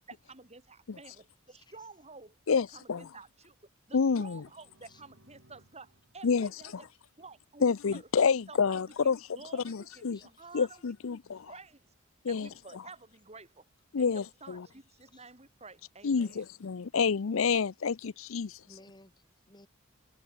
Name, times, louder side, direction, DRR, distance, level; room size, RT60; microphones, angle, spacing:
voice 1, 0.1-3.6 3.9-6.9 7.2-8.1 8.5-10.9 11.5-11.9 12.3-13.7 14.0-16.5, right 3 dB, 30° right, 7.1 m, -51 dB
voice 2, 1.5-1.9 4.9-5.0 8.1-8.3 10.1-10.8 15.1-15.3 18.6-19.7, left 2 dB, 20° left, 7.2 m, -59 dB
voice 3, 2.5-3.0 3.9-4.4 6.2-6.5 7.6-9.2 9.5-10.2 10.5-11.5 12.2-12.5 13.9-14.6 16.0-18.6, left 5 dB, 70° left, 0.5 m, -28 dB
sound 1, 4.3-8.0, right 1 dB, 75° right, 7.5 m, -66 dB
head